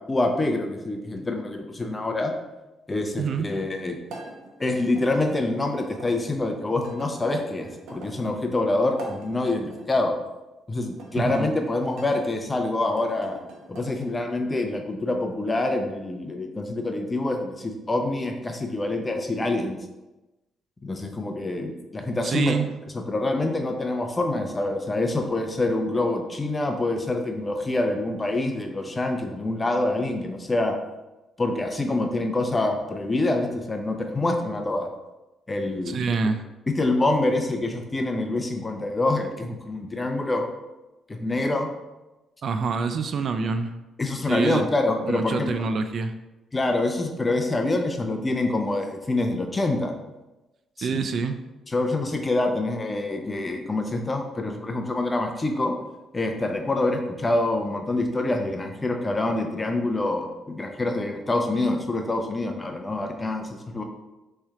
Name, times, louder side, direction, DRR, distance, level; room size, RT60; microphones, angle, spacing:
voice 1, 0.1-2.3 2.9-4.0 4.6-10.1 10.7-13.4 13.7-19.8 20.8-22.6 22.9-30.7 31.4-34.9 35.5-36.2 36.7-40.5 41.1-41.7 44.0-45.6 46.5-49.9 50.8-51.1 51.7-55.8 56.1-63.8, left 2 dB, 20° left, 4 dB, 0.6 m, -26 dB
sound 1, 4.1-6.1 6.8-8.1 8.9-10.1 10.9-12.2 12.8-14.2, right 3 dB, 75° right, 0.9 m, -43 dB
voice 2, 11.2-11.5 22.2-22.7 35.9-36.4 42.4-43.7 44.3-44.7 45.0-46.1 50.8-51.4, right 5 dB, 55° right, 8 dB, 0.3 m, -26 dB
4.3 x 3.3 x 3.6 m, 1.0 s
cardioid pair, 90°, 0 cm